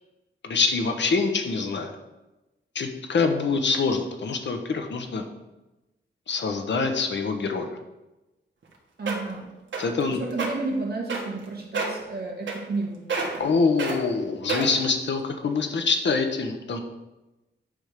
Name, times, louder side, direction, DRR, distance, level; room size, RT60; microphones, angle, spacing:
voice 1, 0.4-1.9 2.7-5.3 6.3-7.7 9.8-10.2 13.4-16.8, left 4 dB, 65° left, 5 dB, 1.0 m, -25 dB
sound 1, 8.6-8.7 9.1-9.4 9.7-10.0 10.3-10.5 11.1-11.4 11.7-12.0 12.5-12.8 13.1-13.5 13.8-14.0 14.5-14.9 15.5-15.6, right 4 dB, 70° right, 1.7 m, -28 dB
voice 2, 9.0-9.5 10.1-13.0, right 3 dB, 50° right, -2 dB, 2.0 m, -31 dB
9.8 x 3.5 x 6.6 m, 1.0 s
wide cardioid pair, 155°, 20 cm